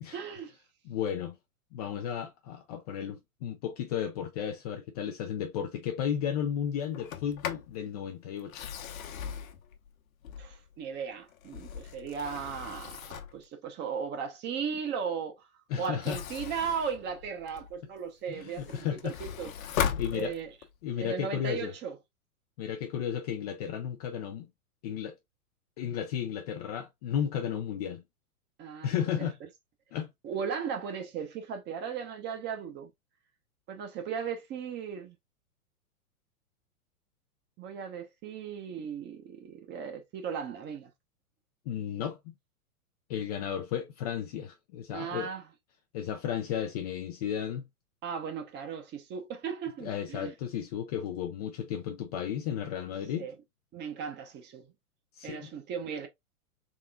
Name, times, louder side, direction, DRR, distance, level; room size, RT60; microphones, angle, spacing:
voice 1, 0.1-0.6 10.4-15.4 15.8-19.5 20.1-20.5 21.0-22.0 28.6-28.9 29.2-29.3 30.2-32.9 33.7-35.2 37.6-40.9 44.9-45.5 48.0-50.3 53.2-53.3 53.7-54.7 55.2-56.1, right 7 dB, 25° right, 0.9 m, -36 dB
voice 2, 0.9-1.4 1.7-8.7 15.7-16.2 18.3-19.2 20.0-20.3 20.8-21.7 22.6-24.5 24.8-25.1 25.8-28.0 28.8-29.4 29.9-30.1 41.7-42.3 43.1-45.3 45.9-47.7 49.8-53.3 55.2-55.5, left 9 dB, 30° left, 0.4 m, -34 dB
Sliding door, 6.9-7.7 8.4-10.7 11.3-13.4 15.8-17.8 18.3-20.8, left 8 dB, 65° left, 1.0 m, -37 dB
3.7 x 3.7 x 2.3 m
hypercardioid pair, 120°, 44 cm